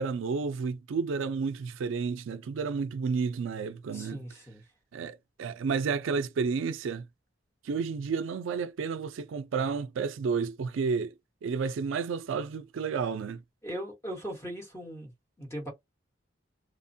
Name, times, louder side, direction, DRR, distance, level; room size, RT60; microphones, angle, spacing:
voice 1, 0.0-4.3 4.9-7.1 7.6-11.1 11.4-13.4, right 5 dB, 85° right, 0.4 m, -31 dB
voice 2, 3.9-4.6 13.6-15.1 15.4-15.7, equal, 15° left, 1.0 m, -39 dB
3.0 x 2.1 x 2.6 m
head